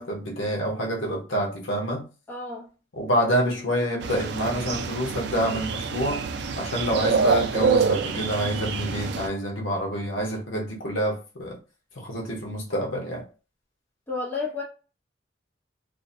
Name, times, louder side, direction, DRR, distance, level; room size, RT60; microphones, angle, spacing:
voice 1, 0.0-2.0 3.0-6.2 6.6-11.6 12.0-13.2, equal, 85° left, 0.8 m, -27 dB
voice 2, 2.3-2.7 14.1-14.6, left 4 dB, 10° left, 0.6 m, -31 dB
sound 1, 4.0-9.3, right 5 dB, 60° right, 0.3 m, -26 dB
2.6 x 2.1 x 2.5 m
head